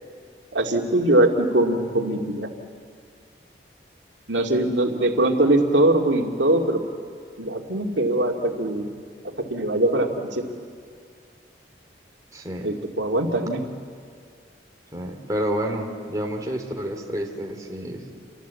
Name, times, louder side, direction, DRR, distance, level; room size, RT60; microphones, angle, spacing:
voice 1, 0.5-2.5 4.3-6.8 7.4-8.9 9.5-10.4 12.6-13.6, right 1 dB, 90° right, 2 dB, 2.3 m, -21 dB
voice 2, 12.3-12.7 14.9-18.1, equal, 20° right, 2 dB, 2.8 m, -29 dB
28.5 x 24.0 x 8.3 m, 2.1 s
head